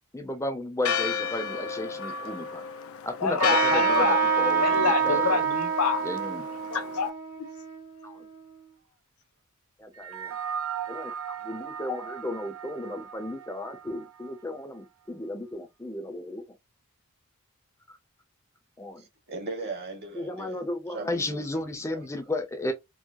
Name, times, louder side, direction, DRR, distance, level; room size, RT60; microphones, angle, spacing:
voice 1, 0.1-2.6 3.0-5.4 6.0-6.5 8.0-8.3 9.8-10.4 10.9-16.4 17.9-18.0 18.8-19.1 20.1-22.7, left 2 dB, 15° left, 0.6 m, -34 dB
Church bell, 0.8-7.1, left 6 dB, 60° left, 0.4 m, -33 dB
voice 2, 3.2-4.2 4.6-6.0 6.7-7.1 7.4-7.5, left 5 dB, 85° left, 0.8 m, -27 dB
Trumpet, 3.4-8.4, right 6 dB, 80° right, 2.3 m, -27 dB
sound 1, 9.9-14.6, right 8 dB, 65° right, 0.6 m, -38 dB
voice 3, 19.0-20.6 20.9-21.4 21.9-22.0, right 3 dB, 45° right, 1.1 m, -38 dB
4.6 x 2.0 x 2.5 m
head